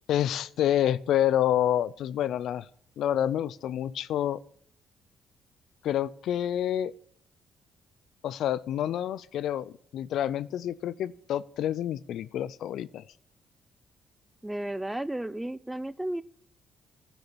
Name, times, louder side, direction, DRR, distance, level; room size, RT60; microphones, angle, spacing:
voice 1, 0.1-2.7 3.0-4.4 5.8-6.9 8.2-13.0, left 11 dB, 75° left, 19 dB, 0.4 m, -28 dB
voice 2, 14.4-16.2, right 1 dB, 10° right, 16 dB, 0.4 m, -33 dB
11.5 x 6.9 x 6.9 m, 0.65 s
cardioid pair, 90°, 0 cm